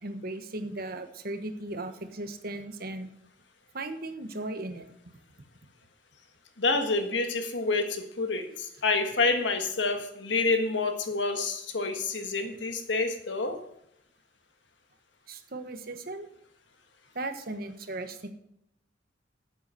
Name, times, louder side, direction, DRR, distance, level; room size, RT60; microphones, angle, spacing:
voice 1, 0.0-3.1 3.7-5.2 15.3-16.3 17.1-18.3, right 2 dB, 50° right, 7 dB, 1.2 m, -37 dB
voice 2, 6.6-13.6, left 3 dB, 70° left, 6 dB, 1.6 m, -28 dB
9.5 x 8.1 x 7.6 m, 0.76 s
head